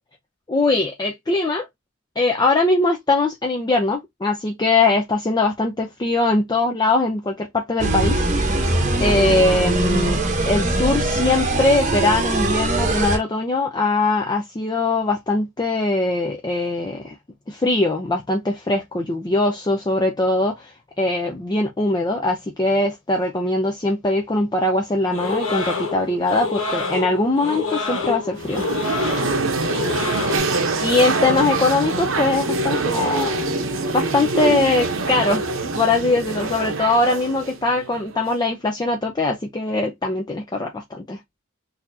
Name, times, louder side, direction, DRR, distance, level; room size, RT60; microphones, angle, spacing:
voice 1, 0.5-1.7 2.2-8.2 9.0-10.2 10.5-17.1 17.5-28.6 30.8-33.5 33.9-35.4 35.7-41.2, left 2 dB, 20° left, 0.5 m, -21 dB
sound 1, 7.8-13.2, right 2 dB, 35° right, 0.9 m, -21 dB
sound 2, 25.1-30.4, left 3 dB, 80° left, 1.4 m, -27 dB
sound 3, 28.4-38.4, right 3 dB, 80° right, 0.9 m, -24 dB
4.0 x 2.7 x 2.6 m
head